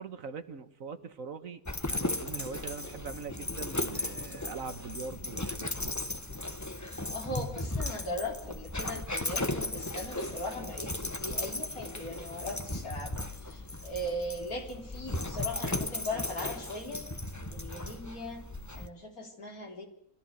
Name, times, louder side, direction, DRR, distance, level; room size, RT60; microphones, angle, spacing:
voice 1, 0.0-1.6 1.9-6.0, right 5 dB, 65° right, 11 dB, 1.7 m, -42 dB
Dog, 1.7-18.9, left 2 dB, 15° left, 1.1 m, -36 dB
voice 2, 7.1-17.1 17.5-18.5 18.8-19.9, left 1 dB, 70° left, 3 dB, 4.1 m, -39 dB
24.5 x 14.5 x 7.9 m, 0.74 s
omnidirectional pair, 1.6 m